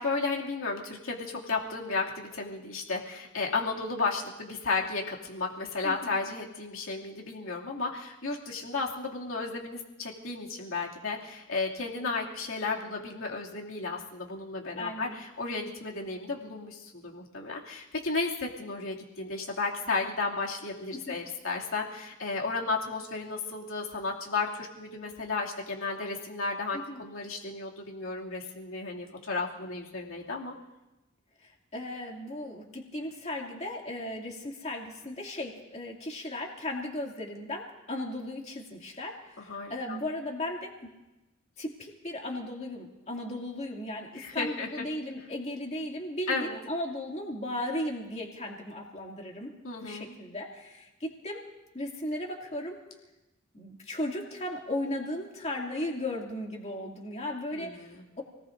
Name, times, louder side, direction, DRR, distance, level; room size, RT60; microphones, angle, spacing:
voice 1, 0.0-30.5 39.5-40.0 44.1-44.8 46.3-46.6 49.6-50.2 57.6-58.0, left 3 dB, 75° left, -2 dB, 2.6 m, -33 dB
voice 2, 5.8-6.2 14.8-15.1 20.9-21.2 26.7-27.0 31.4-40.9 41.6-49.5 49.8-51.4 51.7-52.8 53.5-58.2, left 1 dB, 30° left, -1 dB, 2.5 m, -36 dB
29.0 x 19.0 x 2.6 m, 1.0 s
head